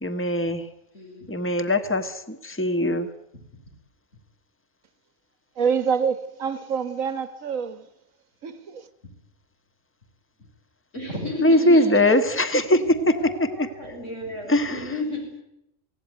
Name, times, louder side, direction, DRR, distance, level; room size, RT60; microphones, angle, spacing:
voice 1, 0.0-0.7 1.3-3.1 11.4-12.8 13.1-13.7 14.5-14.7, left 1 dB, 10° left, 1.4 m, -21 dB
voice 2, 0.9-1.4 3.5-3.6 9.0-9.1 10.9-12.3 12.7-15.4, left 2 dB, 70° left, 6.2 m, -33 dB
voice 3, 5.6-7.9 8.4-8.9, right 6 dB, 90° right, 1.7 m, -26 dB
25.5 x 17.0 x 9.4 m
omnidirectional pair, 1.3 m